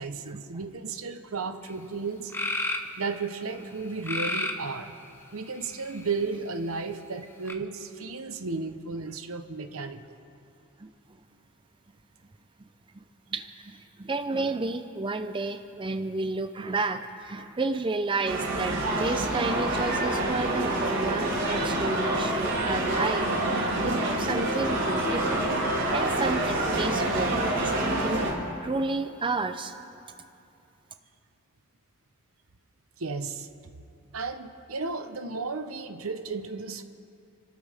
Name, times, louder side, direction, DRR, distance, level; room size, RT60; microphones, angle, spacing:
voice 1, 0.0-2.3 3.0-4.9 5.3-10.2 33.0-33.5 34.1-36.8, right 4 dB, 80° right, 8 dB, 0.9 m, -34 dB
sound 1, 1.7-1.8 2.3-2.9 4.0-4.7 5.5-6.2 7.5-7.6, left 2 dB, 10° left, 0.8 m, -30 dB
voice 2, 13.3-25.4 25.9-27.4 27.6-28.3 28.6-29.8, right 3 dB, 25° right, 8 dB, 0.5 m, -31 dB
sound 2, 18.2-28.3, right 1 dB, 65° right, 4.7 m, -27 dB
29.5 x 13.0 x 3.5 m, 2.6 s
head